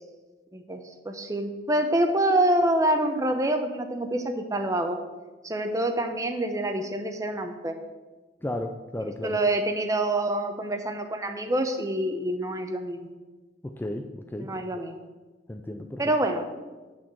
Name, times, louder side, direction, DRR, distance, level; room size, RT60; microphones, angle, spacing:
voice 1, 0.5-5.0 5.4-7.7 9.2-13.1 14.4-15.0 16.0-16.4, right 1 dB, 20° right, 6 dB, 0.8 m, -26 dB
voice 2, 8.4-9.4 13.6-14.8 15.5-16.0, left 1 dB, 10° left, 5 dB, 0.3 m, -34 dB
9.1 x 4.3 x 7.3 m, 1.2 s
head